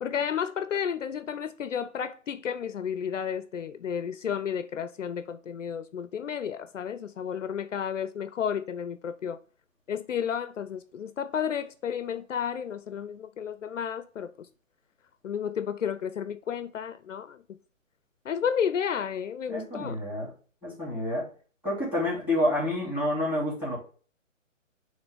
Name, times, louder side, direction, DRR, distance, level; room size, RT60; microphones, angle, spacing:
voice 1, 0.0-9.4 9.9-14.5 15.2-17.4 18.2-20.0, left 8 dB, 70° left, 0.6 m, -32 dB
voice 2, 19.5-20.3 20.6-21.3 21.6-23.8, left 1 dB, 5° right, 3.0 m, -28 dB
9.1 x 3.3 x 3.5 m
hypercardioid pair, 150°, 39 cm